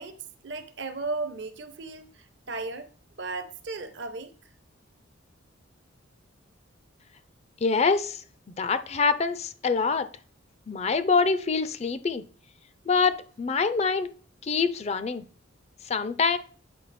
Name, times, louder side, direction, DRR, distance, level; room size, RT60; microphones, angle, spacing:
voice 1, 0.0-2.9 3.2-4.3, right 3 dB, 60° right, 0.8 m, -35 dB
voice 2, 7.6-8.2 8.6-10.1 10.7-12.2 12.9-14.1 14.4-15.2 15.9-16.4, left 4 dB, 30° left, 0.4 m, -25 dB
8.3 x 4.8 x 4.1 m
head